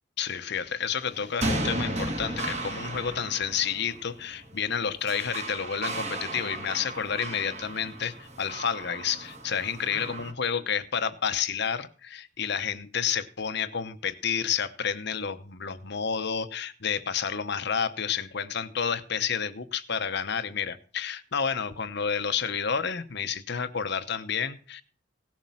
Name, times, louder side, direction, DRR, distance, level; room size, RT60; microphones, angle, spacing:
voice 1, 0.2-24.8, left 7 dB, 60° left, 11 dB, 0.9 m, -30 dB
sound 1, 1.0-10.3, right 2 dB, 35° right, 2.2 m, -35 dB
17.5 x 7.5 x 5.7 m, 0.40 s
head